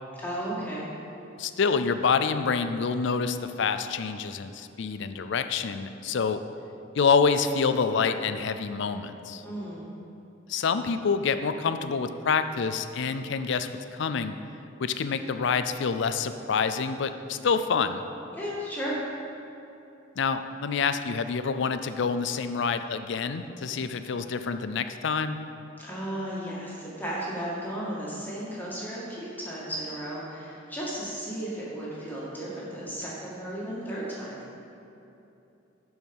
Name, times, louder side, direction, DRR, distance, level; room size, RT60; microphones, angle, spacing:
voice 1, 0.2-0.8 9.4-9.8 18.3-19.0 25.8-34.4, right 1 dB, 10° left, -7 dB, 1.9 m, -34 dB
voice 2, 1.4-6.4 6.9-9.4 10.5-14.3 14.8-18.0 20.2-25.4, left 5 dB, 65° left, 10 dB, 0.4 m, -27 dB
11.5 x 4.8 x 5.3 m, 2.9 s
head